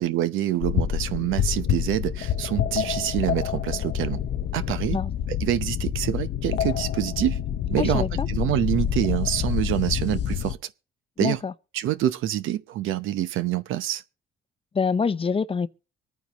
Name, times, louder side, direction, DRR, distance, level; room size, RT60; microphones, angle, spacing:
voice 1, 0.0-4.2 4.5-5.0 5.4-7.4 7.7-10.6 11.2-11.4 11.7-14.0, right 12 dB, 85° right, 0.8 m, -26 dB
sound 1, 0.6-10.5, left 9 dB, 65° left, 0.8 m, -27 dB
voice 2, 7.8-8.3 11.2-11.5 14.7-15.7, left 5 dB, 30° left, 0.6 m, -25 dB
24.5 x 9.4 x 3.0 m
cardioid pair, 90°, 20 cm